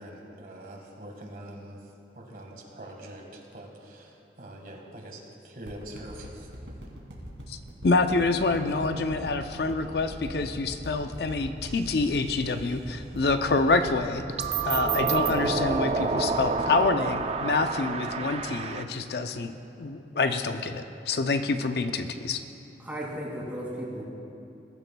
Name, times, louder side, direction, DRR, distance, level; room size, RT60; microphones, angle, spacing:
voice 1, 0.0-1.8 2.1-6.5, right 1 dB, 50° right, 1 dB, 1.7 m, -44 dB
sound 1, 5.7-18.0 18.4-18.5, equal, 75° right, 2.4 m, -42 dB
voice 2, 7.8-14.2 14.6-19.5 19.8-22.4, left 3 dB, 60° left, 8 dB, 0.5 m, -27 dB
sound 2, 11.6-11.9 14.4-18.8, right 4 dB, 35° right, 0.5 m, -28 dB
voice 3, 22.8-24.0, equal, 10° right, -4 dB, 2.3 m, -35 dB
21.5 x 13.0 x 2.3 m, 2.8 s
head